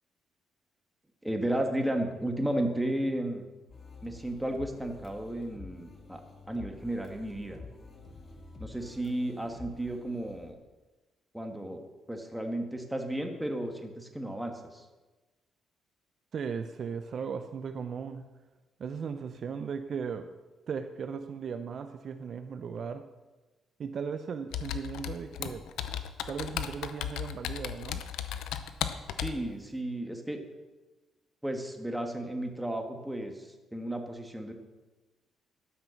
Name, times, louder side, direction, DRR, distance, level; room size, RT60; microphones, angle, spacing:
voice 1, 1.2-3.4 4.0-6.2 6.5-7.6 8.6-10.5 11.3-14.9 29.2-30.4 31.4-34.5, right 1 dB, 5° right, 4 dB, 1.7 m, -33 dB
sound 1, 3.7-10.5, left 3 dB, 40° left, 1.8 m, -49 dB
voice 2, 16.3-18.3 18.8-20.3 20.7-23.1 23.8-25.7 26.3-28.0, right 6 dB, 55° right, 8 dB, 0.6 m, -37 dB
Computer keyboard, 24.5-29.4, left 10 dB, 85° left, 0.7 m, -35 dB
12.5 x 6.0 x 6.5 m, 1.2 s
cardioid pair, 90°, 0 cm